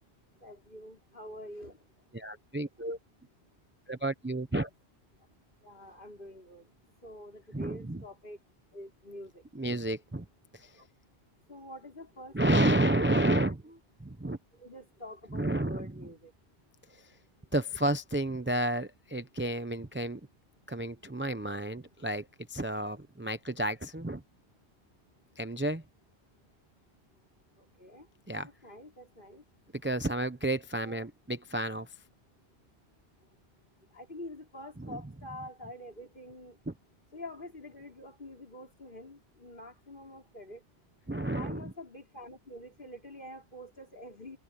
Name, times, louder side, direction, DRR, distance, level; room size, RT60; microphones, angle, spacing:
voice 1, 0.4-1.8 5.6-6.7 7.0-8.4 8.7-9.4 10.8-10.9 11.5-13.5 14.5-16.3 27.6-28.1 28.4-29.4 30.8-31.0 33.9-36.6 37.1-40.6 41.3-44.4, left 1 dB, 50° left, 5.7 m, -47 dB
voice 2, 2.1-3.0 3.9-4.7 7.5-8.0 9.5-10.3 10.5-10.7 12.3-14.4 15.3-15.9 16.9-17.0 17.5-20.2 20.7-24.2 25.4-25.8 28.3-28.5 29.8-31.9 34.8-35.0 36.7-36.8 41.1-41.7, right 1 dB, 10° right, 0.7 m, -31 dB
omnidirectional pair, 1.1 m